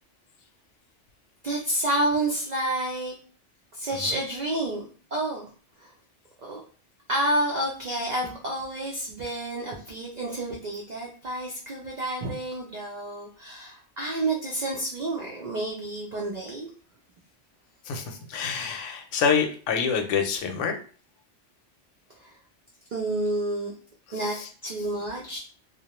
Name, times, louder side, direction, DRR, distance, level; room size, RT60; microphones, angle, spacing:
voice 1, 1.4-3.1 3.7-4.8 5.1-5.5 5.8-5.9 6.4-6.6 7.1-16.7 22.2-22.4 22.9-23.7 24.1-24.3 24.6-25.4, right 1 dB, 55° right, -2 dB, 0.5 m, -29 dB
voice 2, 17.9-20.8, left 6 dB, 80° left, 4 dB, 0.9 m, -26 dB
2.5 x 2.1 x 2.9 m, 0.40 s
omnidirectional pair, 1.2 m